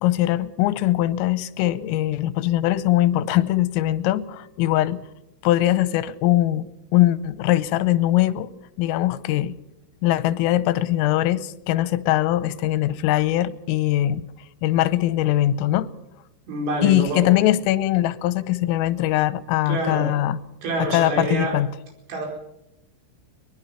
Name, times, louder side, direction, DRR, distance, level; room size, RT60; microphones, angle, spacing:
voice 1, 0.0-5.0 5.4-6.7 6.9-8.5 8.8-9.6 10.0-14.2 14.6-15.9 16.8-20.4 20.8-21.7, left 14 dB, 90° left, 16 dB, 3.5 m, -21 dB
voice 2, 16.5-17.5 19.7-20.1 20.6-21.5 22.1-22.3, right 2 dB, 65° right, 2 dB, 7.0 m, -26 dB
23.0 x 20.0 x 5.7 m, 0.88 s
omnidirectional pair, 5.8 m